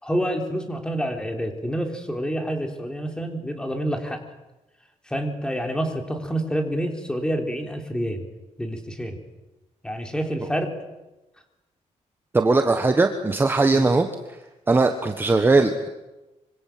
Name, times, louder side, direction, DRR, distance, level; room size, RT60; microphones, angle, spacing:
voice 1, 0.0-4.2 5.1-8.3 8.6-9.2 9.8-10.7 13.7-13.9, equal, 5° left, 4 dB, 3.5 m, -28 dB
voice 2, 12.3-14.1 14.7-15.9, right 3 dB, 15° right, 5 dB, 1.4 m, -19 dB
25.0 x 25.0 x 7.7 m, 1.0 s
wide cardioid pair, 155°, 13 cm